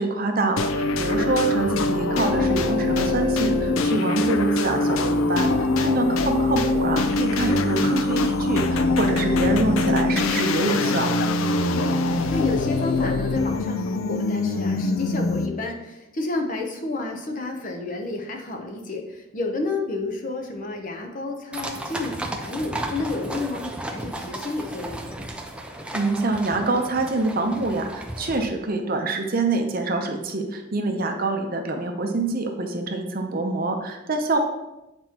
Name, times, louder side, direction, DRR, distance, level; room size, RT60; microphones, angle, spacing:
voice 1, 0.0-11.1 25.9-34.4, right 2 dB, 45° right, 4 dB, 0.6 m, -25 dB
sound 1, 0.6-15.7, left 2 dB, 75° left, 0.4 m, -23 dB
voice 2, 11.5-25.2 30.8-31.1, left 2 dB, 40° left, 3 dB, 0.7 m, -31 dB
sound 2, 21.5-28.5, right 1 dB, 5° right, 0.4 m, -34 dB
7.8 x 4.3 x 2.9 m, 0.95 s
head